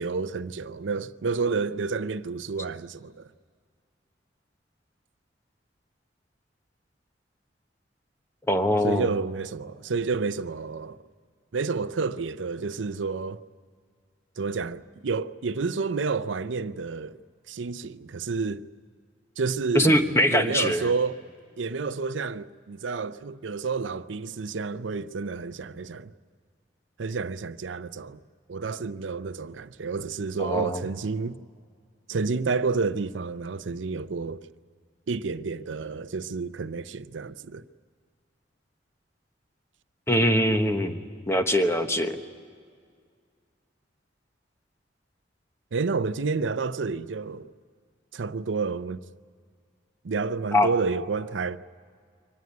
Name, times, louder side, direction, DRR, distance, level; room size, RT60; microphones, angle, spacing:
voice 1, 0.0-3.3 8.8-11.0 11.5-13.4 14.4-17.2 17.5-18.6 19.4-21.2 21.6-26.1 27.0-28.2 28.5-31.4 32.1-34.4 35.1-37.6 45.7-47.5 48.1-49.0 50.0-51.6, right 4 dB, 90° right, 0.6 m, -30 dB
voice 2, 8.5-9.1 19.7-20.9 30.4-30.8 40.1-41.0 41.3-42.2 50.5-50.7, left 1 dB, 15° left, 1.1 m, -22 dB
24.0 x 19.0 x 9.4 m
head